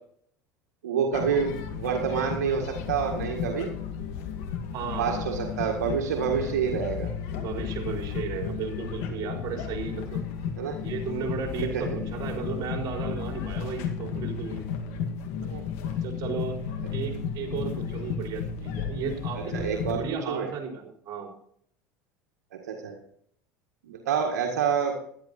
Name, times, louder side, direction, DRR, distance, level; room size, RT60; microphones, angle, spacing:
voice 1, 0.8-3.7 5.0-7.1 10.6-10.8 11.7-11.8 15.5-15.6 19.5-20.5 22.5-23.0 23.8-24.9, right 7 dB, 90° right, 2 dB, 1.8 m, -28 dB
sound 1, 1.1-20.1, left 7 dB, 70° left, 2.2 m, -33 dB
voice 2, 4.7-5.3 7.3-10.2 10.8-14.6 15.4-15.5 16.0-16.6 16.9-21.3, right 5 dB, 50° right, 1 dB, 4.4 m, -34 dB
12.0 x 11.5 x 4.2 m, 0.63 s
hypercardioid pair, 90°, 9 cm